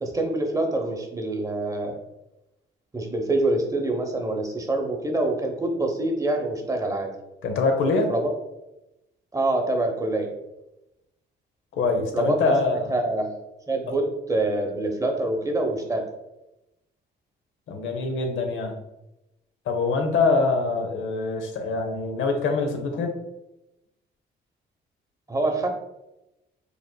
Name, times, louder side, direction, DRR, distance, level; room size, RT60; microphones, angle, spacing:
voice 1, 0.0-2.0 2.9-7.1 8.1-8.3 9.3-10.3 12.1-12.5 12.9-13.3 13.7-14.0 14.3-16.0 25.3-25.7, right 2 dB, 15° right, 2 dB, 0.8 m, -25 dB
voice 2, 7.4-8.1 11.8-12.9 17.7-18.7 19.7-23.1, left 3 dB, 80° left, 4 dB, 0.8 m, -24 dB
5.0 x 3.2 x 2.2 m, 0.92 s
cardioid pair, 90°, 20 cm